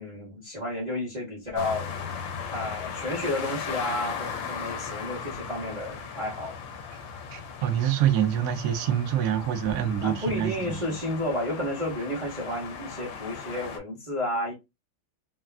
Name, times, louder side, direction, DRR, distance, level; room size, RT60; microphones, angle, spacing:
voice 1, 0.0-1.9 2.5-6.5 10.0-14.5, left 1 dB, 35° right, 0.7 m, -31 dB
sound 1, 1.6-13.8, left 6 dB, 75° left, 1.3 m, -37 dB
voice 2, 7.3-10.8, right 10 dB, 85° right, 0.7 m, -26 dB
3.4 x 2.3 x 2.3 m
omnidirectional pair, 2.2 m